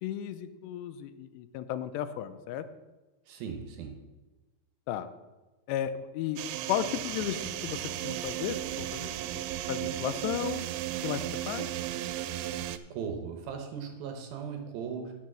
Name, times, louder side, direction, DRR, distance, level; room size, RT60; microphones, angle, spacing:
voice 1, 0.0-2.7 4.9-5.1 5.7-6.4 6.7-9.4 9.7-10.6 11.0-11.7, left 10 dB, 85° left, 11 dB, 2.8 m, -34 dB
voice 2, 3.3-4.0 12.9-15.1, right 6 dB, 70° right, 4 dB, 2.6 m, -38 dB
sound 1, 6.4-12.8, right 13 dB, 90° right, 2.7 m, -35 dB
10.5 x 6.6 x 6.1 m, 1.2 s
omnidirectional pair, 4.9 m